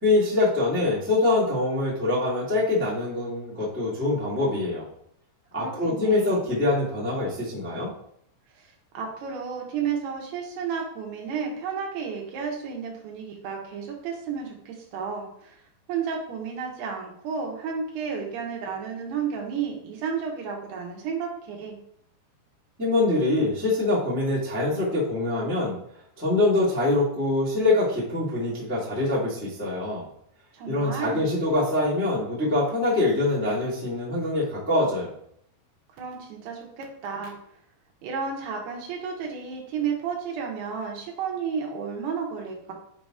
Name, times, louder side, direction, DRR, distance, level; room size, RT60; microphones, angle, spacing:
voice 1, 0.0-4.8 5.5-7.9 22.8-25.8 26.2-30.1 30.7-35.1, left 2 dB, 20° right, -8 dB, 0.3 m, -24 dB
voice 2, 5.6-6.5 8.5-15.6 15.9-21.8 30.5-31.3 36.0-37.3 38.0-42.7, right 6 dB, 70° right, 0 dB, 3.0 m, -32 dB
8.8 x 3.0 x 4.9 m, 0.69 s
omnidirectional pair, 5.2 m